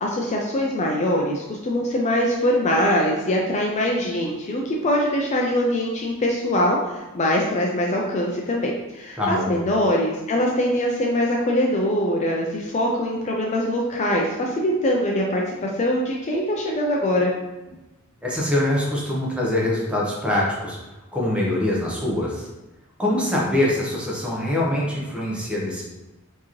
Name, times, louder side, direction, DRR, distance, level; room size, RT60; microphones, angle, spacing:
voice 1, 0.0-17.3, left 1 dB, 30° left, -1 dB, 0.4 m, -23 dB
voice 2, 9.2-9.5 18.2-20.8 21.1-22.5 23.0-25.8, left 1 dB, 5° right, -4 dB, 0.8 m, -23 dB
4.5 x 2.8 x 3.0 m, 1.1 s
head